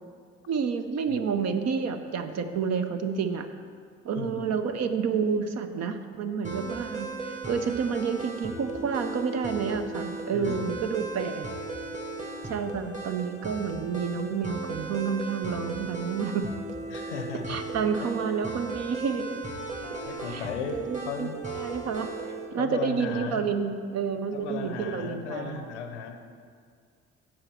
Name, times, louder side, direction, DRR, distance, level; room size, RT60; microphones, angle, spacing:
voice 1, 0.5-3.5 4.0-11.5 12.4-16.5 17.5-19.4 20.3-21.3 21.5-25.7, right 6 dB, 50° right, 8 dB, 0.6 m, -29 dB
voice 2, 4.1-4.5 10.3-10.7 12.5-12.7 16.9-17.6 18.0-18.1 20.0-21.4 22.6-23.4 24.3-26.3, left 6 dB, 85° left, 7 dB, 0.7 m, -36 dB
sound 1, 6.4-22.5, right 3 dB, 20° right, 1.5 m, -37 dB
7.7 x 4.4 x 6.9 m, 2.1 s
hypercardioid pair, 45°, 34 cm